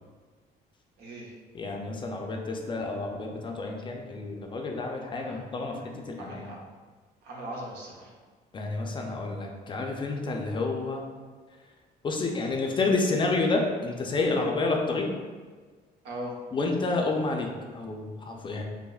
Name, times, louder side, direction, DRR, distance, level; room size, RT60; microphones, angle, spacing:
voice 1, 1.0-1.3 5.2-5.5 6.2-6.6 7.2-8.1 16.0-16.4, right 1 dB, 80° right, -3 dB, 0.9 m, -39 dB
voice 2, 1.5-6.5 8.5-11.0 12.0-15.1 16.5-18.6, left 3 dB, 30° left, 1 dB, 0.4 m, -29 dB
5.8 x 2.0 x 2.3 m, 1.4 s
cardioid pair, 110°, 17 cm